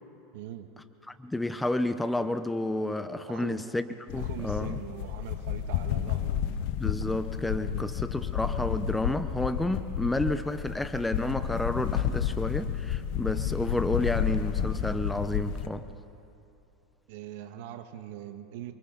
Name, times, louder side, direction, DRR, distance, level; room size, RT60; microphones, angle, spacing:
voice 1, 0.3-0.7 3.3-3.6 4.2-6.5 7.7-7.9 17.1-18.7, right 11 dB, 70° right, 7 dB, 1.5 m, -42 dB
voice 2, 1.1-3.8 4.1-4.8 6.8-15.9, left 2 dB, 5° left, 10 dB, 0.8 m, -30 dB
sound 1, 4.1-15.7, left 9 dB, 60° left, 1.0 m, -31 dB
28.5 x 24.0 x 4.0 m, 2.9 s
supercardioid pair, 135°, 0 cm